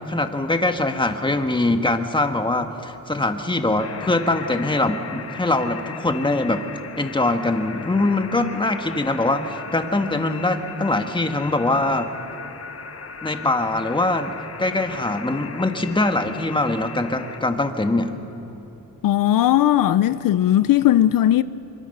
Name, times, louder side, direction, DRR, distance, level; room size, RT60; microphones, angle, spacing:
voice 1, 0.1-6.7 7.0-12.1 13.2-18.1, left 2 dB, 15° left, 1.6 m, -22 dB
sound 1, 3.8-17.4, left 6 dB, 45° left, 1.4 m, -38 dB
voice 2, 19.0-21.4, left 12 dB, 80° left, 0.6 m, -17 dB
26.0 x 24.0 x 6.7 m
cardioid pair, 105°, 33 cm